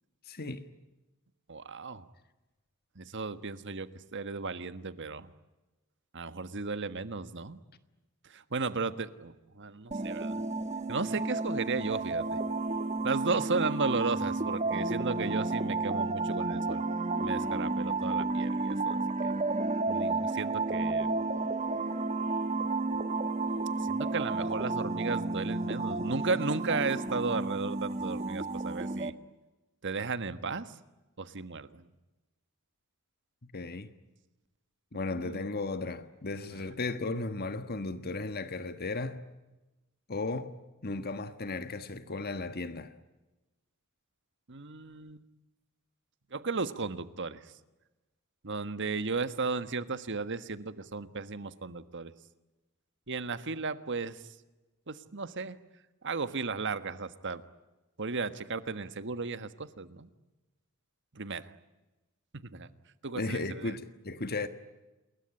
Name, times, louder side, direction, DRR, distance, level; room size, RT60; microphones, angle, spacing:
voice 1, 0.3-0.6 33.4-33.9 34.9-39.2 40.1-40.5 40.8-42.9 63.1-64.5, left 3 dB, 45° left, 1.4 m, -35 dB
voice 2, 1.5-2.1 2.9-5.3 6.1-7.6 8.2-10.4 10.9-12.4 13.0-16.8 17.2-19.3 19.9-21.1 23.8-29.1 29.8-30.7 31.2-31.9 34.9-35.5 36.5-36.6 44.5-45.2 46.3-47.5 48.4-52.1 53.1-54.2 54.9-55.6 56.0-57.4 58.0-60.1 61.1-61.5 62.3-62.7 63.0-63.7, right 4 dB, 60° right, 1.5 m, -35 dB
sound 1, 9.9-29.1, right 3 dB, 30° right, 1.4 m, -32 dB
28.5 x 21.5 x 9.8 m
head